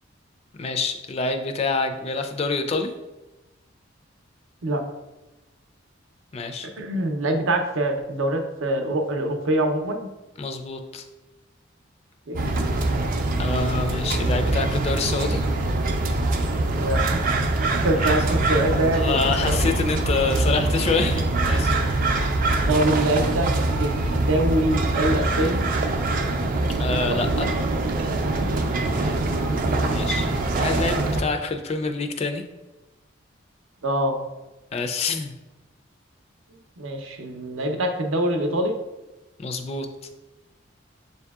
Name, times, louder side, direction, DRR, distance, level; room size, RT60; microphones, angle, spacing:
voice 1, 0.6-2.9 6.3-6.7 10.4-11.0 13.4-15.4 18.0-18.2 18.9-22.0 26.8-27.5 29.8-30.3 30.6-32.4 34.7-35.3 39.4-39.9, left 4 dB, 30° left, 5 dB, 0.3 m, -26 dB
voice 2, 6.8-10.1 12.3-12.5 16.8-17.5 17.8-19.6 22.7-23.5 23.8-25.6 29.0-29.2 33.8-34.2 36.8-38.8, right 1 dB, 80° right, 4 dB, 0.6 m, -24 dB
sound 1, 12.3-31.2, right 2 dB, 45° right, 0.4 m, -23 dB
sound 2, 16.8-17.7 18.0-20.4, left 2 dB, 80° left, 0.6 m, -42 dB
6.9 x 2.7 x 2.3 m, 1.1 s
head